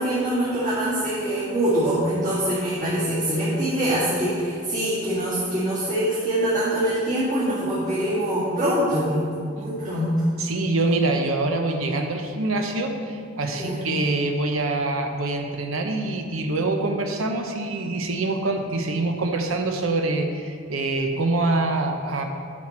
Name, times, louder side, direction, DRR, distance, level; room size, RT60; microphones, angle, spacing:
voice 1, 0.0-9.2 9.6-10.3 13.4-13.8, right 1 dB, 40° right, -11 dB, 2.2 m, -24 dB
voice 2, 10.4-22.2, right 2 dB, 85° right, 4 dB, 0.9 m, -25 dB
9.8 x 6.3 x 4.4 m, 2.2 s
head